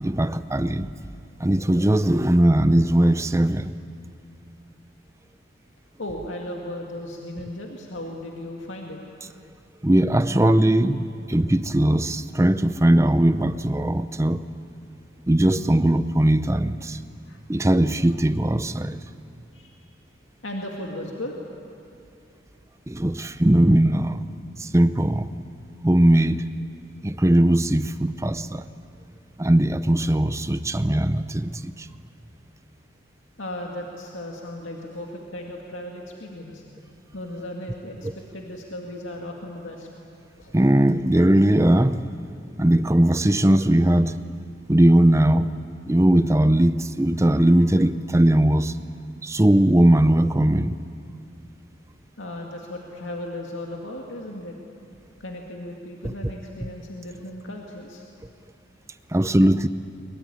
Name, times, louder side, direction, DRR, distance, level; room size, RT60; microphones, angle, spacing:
voice 1, 0.0-0.9 1.4-3.7 9.8-14.4 15.3-17.0 17.5-19.0 22.9-24.2 24.6-25.3 25.8-26.4 27.0-28.6 29.4-31.9 40.5-42.0 42.6-44.1 44.7-45.5 45.9-48.7 49.2-50.8 56.0-56.1 59.1-59.7, right 1 dB, 15° right, 0.6 m, -19 dB
voice 2, 6.0-9.0 17.3-17.4 19.5-19.7 20.4-21.3 33.4-36.6 37.1-39.9 40.4-40.5 47.3-47.8 52.2-54.6 55.2-58.0, left 1 dB, 90° left, 2.3 m, -36 dB
23.0 x 22.5 x 9.9 m
head